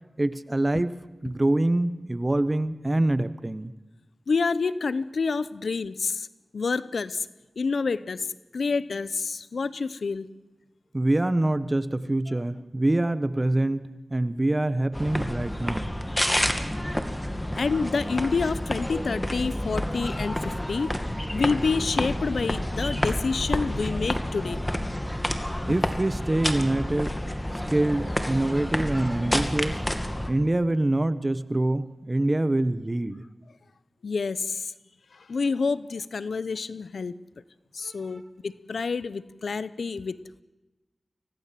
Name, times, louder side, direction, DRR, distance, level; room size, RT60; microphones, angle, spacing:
voice 1, 0.2-3.7 10.9-15.9 25.7-27.1 27.7-29.8 30.2-33.2 37.8-38.2, right 1 dB, 30° right, 13 dB, 1.2 m, -25 dB
voice 2, 4.3-6.3 6.5-7.3 7.6-8.3 8.5-10.3 17.6-20.9 21.3-24.7 30.2-30.3 34.0-34.7 35.1-37.2 37.7-40.4, left 4 dB, 85° left, 16 dB, 0.7 m, -28 dB
sound 1, 14.9-30.3, left 1 dB, 15° left, 2.2 m, -29 dB
25.0 x 17.5 x 7.6 m, 1.1 s
wide cardioid pair, 55°, 0 cm